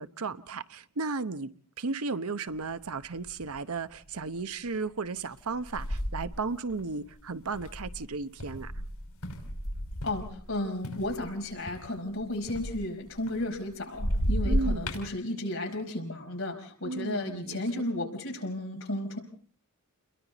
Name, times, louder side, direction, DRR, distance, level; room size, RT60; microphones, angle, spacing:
voice 1, 0.0-1.5 1.8-8.7 14.4-14.9 16.8-17.6, right 4 dB, 80° right, 0.9 m, -34 dB
sound 1, 3.2-3.6 4.1-4.4 5.3-10.5 10.8-13.7 13.9-15.1, equal, 85° left, 5.7 m, -33 dB
voice 2, 10.0-19.2, left 1 dB, 65° left, 4.9 m, -33 dB
29.5 x 22.0 x 4.1 m
head